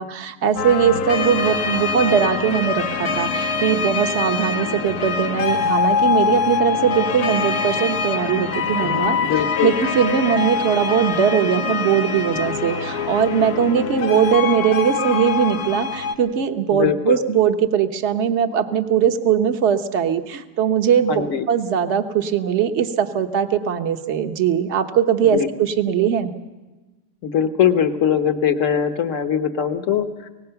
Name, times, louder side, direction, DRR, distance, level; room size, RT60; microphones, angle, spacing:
voice 1, 0.0-9.2 9.6-26.3, right 8 dB, 50° right, 7 dB, 1.2 m, -20 dB
sound 1, 0.6-16.1, left 5 dB, 70° left, 1.4 m, -24 dB
voice 2, 8.8-9.7 16.7-17.2 21.1-21.4 25.3-25.5 27.2-30.3, left 8 dB, 55° left, 8 dB, 1.3 m, -21 dB
24.5 x 19.0 x 5.8 m, 1.2 s
omnidirectional pair, 1.8 m